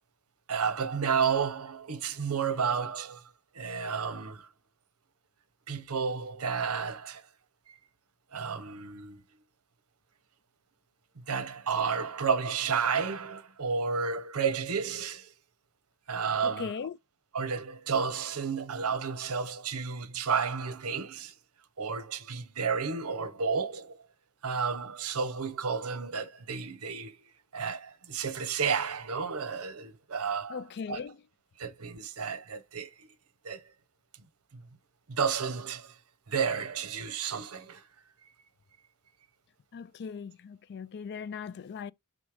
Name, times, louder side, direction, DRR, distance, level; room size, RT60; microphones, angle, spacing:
voice 1, 0.5-3.2 3.5-4.5 5.7-7.2 8.3-9.2 11.2-15.3 16.1-16.7 17.3-21.3 21.8-24.0 24.4-27.2 27.5-31.0 31.6-33.1 33.4-33.6 34.5-34.6 35.1-35.9 36.3-37.8, right 6 dB, 70° right, 0.8 m, -31 dB
voice 2, 16.4-17.0 30.5-31.2 39.7-41.9, left 6 dB, 50° left, 0.4 m, -38 dB
6.3 x 3.7 x 4.9 m
head